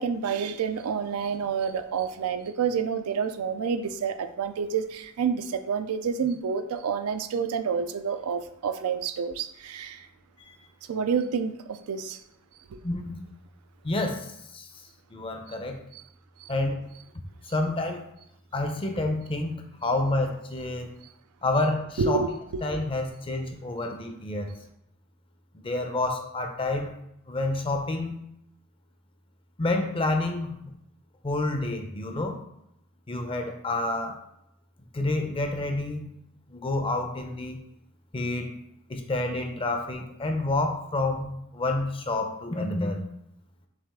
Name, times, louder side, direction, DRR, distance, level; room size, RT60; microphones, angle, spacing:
voice 1, 0.0-10.0 10.9-12.2 15.9-16.0 22.0-22.6, right 6 dB, 70° right, 9 dB, 0.4 m, -28 dB
voice 2, 13.8-14.3 14.5-14.7 15.1-15.8 16.5-16.8 17.5-18.0 18.5-19.6 19.8-20.9 21.4-22.2 22.6-24.5 25.5-26.9 27.3-28.2 29.6-30.5 31.2-32.4 33.1-34.2 34.9-36.2 36.5-37.6 38.1-38.5 38.9-43.0, left 2 dB, 25° left, 4 dB, 0.6 m, -28 dB
6.0 x 2.4 x 3.6 m, 0.78 s
head